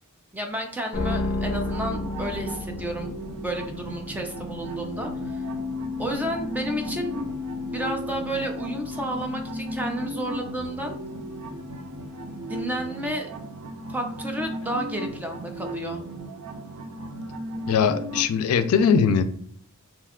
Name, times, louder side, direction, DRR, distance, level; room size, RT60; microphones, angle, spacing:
voice 1, 0.3-3.1 3.4-5.4 6.0-7.2 7.7-11.0 12.5-13.3 13.9-16.0, right 1 dB, 10° right, 3 dB, 0.5 m, -31 dB
sound 1, 0.9-13.2, left 3 dB, 35° left, 0.6 m, -34 dB
sound 2, 1.5-18.2, right 1 dB, 90° right, 0.5 m, -36 dB
voice 2, 17.7-19.2, left 6 dB, 75° left, 9 dB, 0.3 m, -20 dB
2.8 x 2.3 x 3.5 m, 0.62 s
head